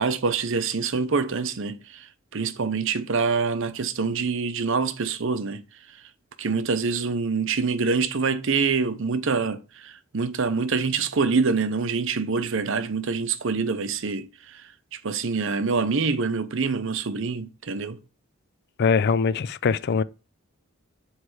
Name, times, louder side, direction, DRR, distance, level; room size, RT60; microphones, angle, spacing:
voice 1, 0.0-2.1 2.3-5.6 6.4-14.6 15.0-18.0, right 4 dB, 60° right, 0.7 m, -25 dB
voice 2, 18.8-20.0, left 5 dB, 50° left, 0.4 m, -22 dB
7.8 x 3.2 x 6.3 m
head